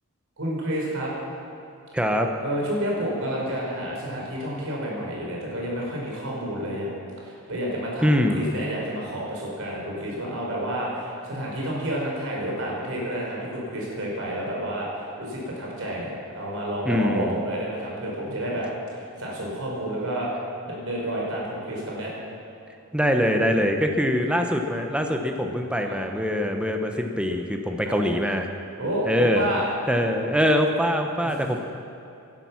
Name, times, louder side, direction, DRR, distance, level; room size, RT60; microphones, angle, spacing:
voice 1, 0.4-1.1 2.4-6.9 7.2-18.7 18.9-20.3 20.6-22.1 25.8-26.0 27.8-28.0 28.8-29.7 31.2-31.5, right 1 dB, 65° right, -3 dB, 4.5 m, -30 dB
voice 2, 1.9-2.3 8.0-8.4 16.8-17.4 22.9-28.5 29.1-29.5 29.9-31.6, equal, 5° right, 4 dB, 1.0 m, -23 dB
17.5 x 11.0 x 6.0 m, 2.8 s
head